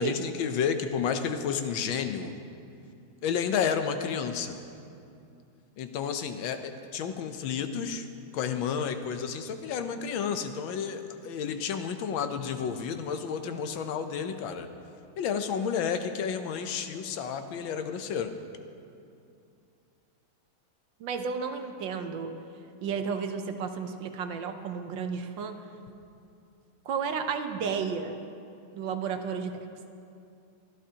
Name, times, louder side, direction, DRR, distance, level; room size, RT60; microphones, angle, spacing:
voice 1, 0.0-2.3 3.2-4.6 5.8-8.1 8.3-14.7 15.2-18.3, left 7 dB, 80° left, 8 dB, 1.5 m, -31 dB
voice 2, 21.0-22.3 22.8-25.6 26.9-28.1 28.7-29.5, right 6 dB, 75° right, 6 dB, 1.5 m, -32 dB
22.5 x 13.0 x 2.9 m, 2.6 s
omnidirectional pair, 2.1 m